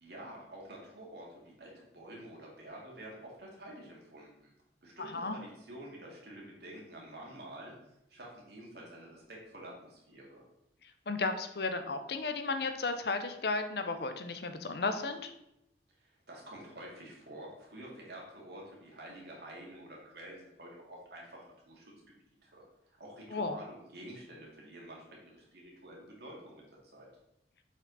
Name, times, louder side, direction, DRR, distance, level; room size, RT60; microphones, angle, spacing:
voice 1, 0.0-4.5 4.8-7.7 8.1-10.4 16.0-21.9 22.3-22.7 23.0-26.6 26.9-27.1, right 1 dB, 70° right, -3 dB, 2.4 m, -49 dB
voice 2, 5.0-5.4 10.8-15.3 23.3-23.6, left 3 dB, 65° left, 8 dB, 0.7 m, -34 dB
7.1 x 4.9 x 4.1 m, 0.82 s
head